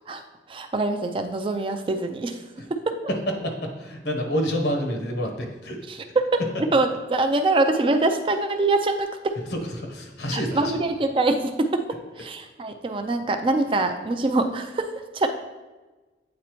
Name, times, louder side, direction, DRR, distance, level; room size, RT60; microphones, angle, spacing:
voice 1, 0.5-2.4 2.7-2.9 5.9-9.3 10.3-11.8 12.2-14.9 15.1-15.3, right 2 dB, 30° right, 7 dB, 0.3 m, -24 dB
voice 2, 3.8-5.8 9.5-10.8, equal, 70° left, 2 dB, 1.0 m, -28 dB
8.5 x 4.1 x 3.0 m, 1.2 s
head